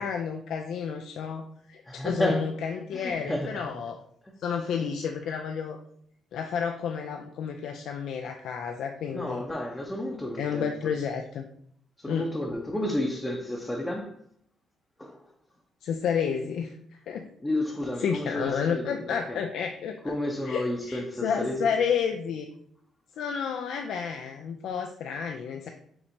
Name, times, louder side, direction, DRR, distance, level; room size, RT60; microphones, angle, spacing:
voice 1, 0.0-4.0 4.4-5.8 6.3-9.4 10.4-11.4 12.1-12.3 15.8-16.8 17.1-17.3 18.0-20.1 20.5-22.5 23.2-25.7, left 7 dB, 80° left, 0.4 m, -31 dB
voice 2, 1.9-2.5 2.9-3.6 9.1-10.7 12.0-14.2 15.0-15.2 17.4-19.4 20.0-21.6, left 1 dB, 10° left, 0.7 m, -31 dB
5.8 x 3.3 x 2.7 m
cardioid pair, 90°, 0 cm